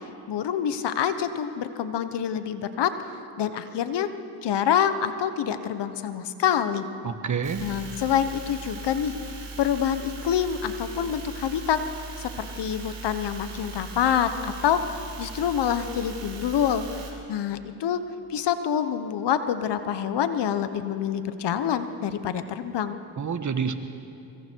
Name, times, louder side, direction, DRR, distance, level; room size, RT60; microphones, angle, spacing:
voice 1, 0.3-2.9 3.4-4.1 4.4-6.9 7.6-9.1 9.6-11.8 12.2-16.9 17.3-18.0 18.3-23.0, left 9 dB, 70° left, 10 dB, 1.3 m, -26 dB
voice 2, 7.0-7.6 23.2-23.7, right 6 dB, 45° right, 8 dB, 1.6 m, -28 dB
sound 1, 7.4-17.1, right 3 dB, 75° right, 4.3 m, -39 dB
25.0 x 24.5 x 4.7 m, 2.8 s
cardioid pair, 65°, 42 cm